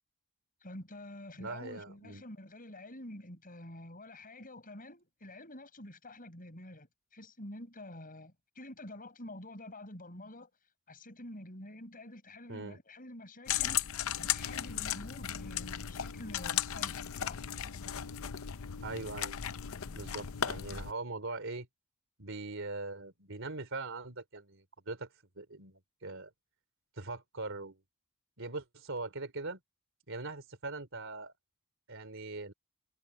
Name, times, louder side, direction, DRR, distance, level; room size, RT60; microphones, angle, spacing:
voice 1, 0.6-10.5 10.9-13.9 14.3-17.4, left 1 dB, 40° left, 7.1 m, -48 dB
voice 2, 1.4-2.2 12.5-12.8 18.8-19.4 19.9-21.7 22.2-25.1 25.4-26.3 27.0-27.8 28.4-29.6 30.1-31.3 31.9-32.5, right 3 dB, 60° right, 3.8 m, -41 dB
sound 1, 13.5-20.9, left 10 dB, 65° left, 0.6 m, -36 dB
head